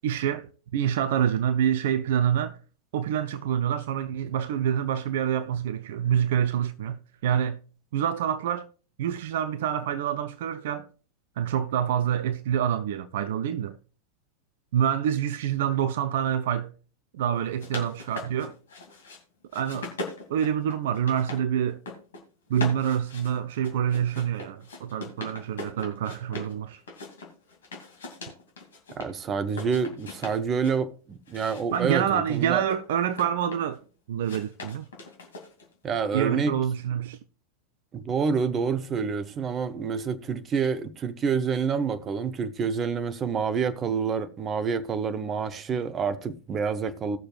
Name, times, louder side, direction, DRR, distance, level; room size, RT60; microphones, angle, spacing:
voice 1, 0.0-2.6 2.9-7.6 7.9-8.7 9.0-10.9 11.4-13.8 14.7-16.7 17.1-18.5 19.5-19.9 20.3-21.8 22.5-26.8 31.7-33.8 34.1-34.9 36.1-37.2, right 9 dB, 55° right, 0.5 m, -27 dB
sound 1, 17.3-19.2 19.5-21.4 21.7-22.2 22.5-26.5 26.9-29.1 29.5-30.8 31.3-33.8 34.2-35.7, left 3 dB, 65° left, 2.5 m, -40 dB
voice 2, 29.0-32.7 35.8-36.5 37.9-47.2, right 6 dB, 25° right, 0.8 m, -28 dB
18.5 x 6.6 x 2.4 m
figure-of-eight pair, 90°, 0 cm